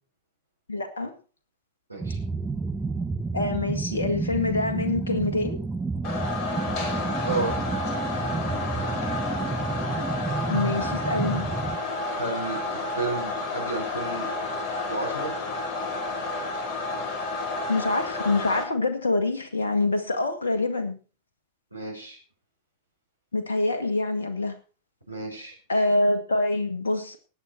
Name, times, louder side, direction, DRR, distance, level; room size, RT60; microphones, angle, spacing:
voice 1, 0.7-1.1 3.3-5.6 10.5-11.5 17.7-21.0 23.3-24.6 25.7-27.2, left 2 dB, 70° left, 8 dB, 1.7 m, -25 dB
sound 1, 2.0-11.8, right 3 dB, 10° right, 1.1 m, -30 dB
sound 2, 6.0-18.6, left 2 dB, 35° left, 4.2 m, -31 dB
voice 2, 7.2-7.7 12.1-14.3 14.9-15.4 21.7-22.2 25.1-25.6, right 3 dB, 85° right, 1 dB, 4.8 m, -32 dB
19.0 x 8.4 x 4.3 m, 0.36 s
figure-of-eight pair, 90°, 0 cm